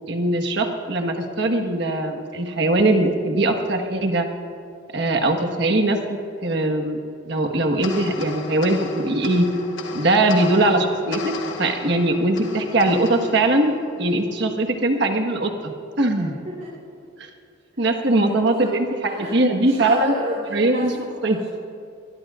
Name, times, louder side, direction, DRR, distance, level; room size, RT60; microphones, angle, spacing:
voice 1, 0.1-4.3 4.9-6.0 6.4-7.0 7.3-9.5 9.9-16.3 17.2-17.3 17.8-18.9 19.3-20.1 20.5-20.9 21.2-21.4, right 2 dB, 55° right, 4 dB, 1.4 m, -21 dB
sound 1, 7.8-14.5, left 3 dB, 65° left, 1.3 m, -35 dB
voice 2, 16.2-16.7 17.8-18.3 18.6-18.7 19.0-19.3 19.6-21.5, equal, 40° right, -5 dB, 3.6 m, -32 dB
21.5 x 21.0 x 2.5 m, 2.4 s
head